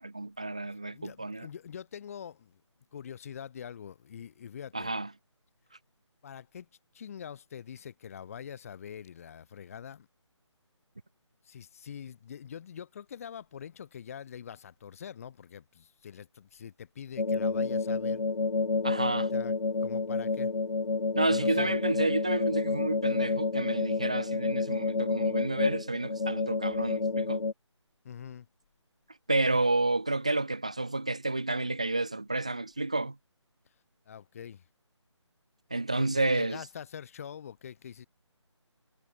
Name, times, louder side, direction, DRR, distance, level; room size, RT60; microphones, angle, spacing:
voice 1, 0.0-1.5 4.7-5.1 18.8-19.3 21.2-27.4 29.3-33.2 35.7-36.6, right 2 dB, 15° right, 0.3 m, -30 dB
voice 2, 0.9-2.6 2.9-4.9 6.2-6.7 6.9-10.1 11.5-18.2 19.3-19.5 19.8-20.5 21.3-21.7 28.0-28.5 34.1-34.6 36.0-38.1, left 8 dB, 30° left, 1.8 m, -44 dB
sound 1, 17.2-27.5, left 3 dB, 90° left, 0.6 m, -29 dB
figure-of-eight pair, 160°, 16 cm